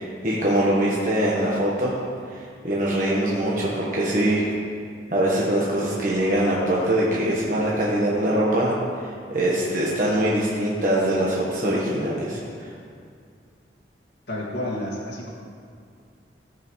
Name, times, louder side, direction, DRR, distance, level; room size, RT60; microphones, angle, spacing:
voice 1, 0.0-2.0 2.3-4.5 5.1-12.7, right 1 dB, 45° right, -5 dB, 1.2 m, -23 dB
voice 2, 14.3-15.3, left 1 dB, 80° left, -5 dB, 1.9 m, -30 dB
14.0 x 7.9 x 3.1 m, 2.2 s
head